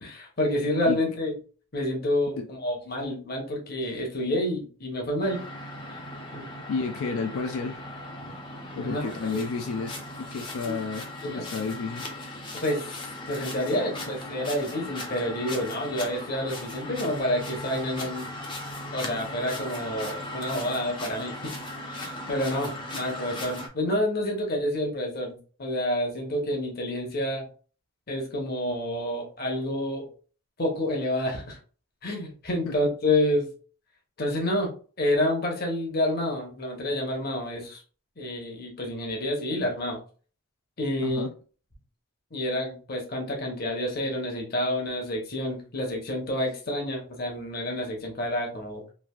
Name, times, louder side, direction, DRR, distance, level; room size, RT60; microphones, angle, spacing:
voice 1, 0.0-1.4 1.7-5.4 5.9-6.0 6.3-6.5 8.8-9.4 10.6-10.8 11.2-11.4 12.5-18.3 18.9-21.4 21.9-27.4 28.1-30.1 30.6-31.6 32.0-33.5 34.2-37.8 38.2-40.0 40.8-41.2 42.3-48.8, left 1 dB, 45° left, 0.9 m, -29 dB
sound 1, 5.2-23.7, left 1 dB, 20° left, 0.5 m, -38 dB
voice 2, 6.7-7.8 8.7-12.1 32.7-32.8 41.0-41.3, left 4 dB, 75° left, 0.3 m, -31 dB
3.2 x 2.5 x 2.3 m
head